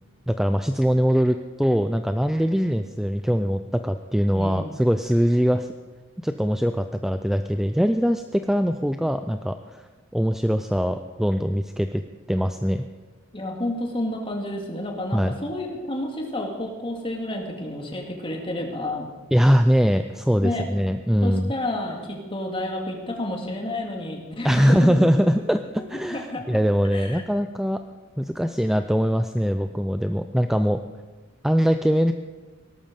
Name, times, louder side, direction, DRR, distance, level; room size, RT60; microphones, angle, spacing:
voice 1, 0.3-5.7 6.2-9.9 10.1-12.0 12.3-12.8 15.1-15.3 19.3-21.5 24.4-27.8 28.2-30.8 31.4-32.1, equal, ahead, 8 dB, 0.4 m, -22 dB
voice 2, 4.3-4.7 13.3-19.1 20.4-20.7 21.2-25.1 25.9-26.6 26.9-27.2, left 1 dB, 25° left, 2 dB, 2.3 m, -30 dB
18.0 x 12.5 x 5.3 m, 1.3 s
head